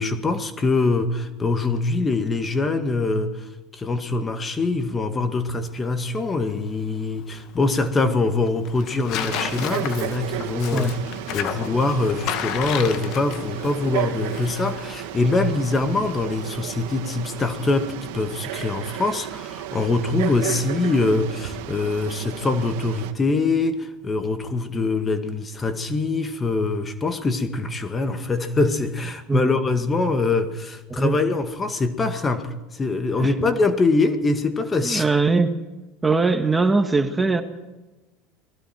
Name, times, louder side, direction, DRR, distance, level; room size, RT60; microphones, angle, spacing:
voice 1, 0.0-10.9 11.3-35.1, left 3 dB, 25° left, 8 dB, 2.0 m, -23 dB
Tearing, 5.6-17.8, left 10 dB, 60° left, 1.7 m, -35 dB
Frog, 9.2-23.1, right 13 dB, 75° right, 2.0 m, -33 dB
voice 2, 30.9-31.2 33.2-33.5 34.8-35.5 36.0-37.4, right 3 dB, 15° right, 7 dB, 1.8 m, -21 dB
29.5 x 20.5 x 4.6 m, 1.1 s
hypercardioid pair, 90°, 0 cm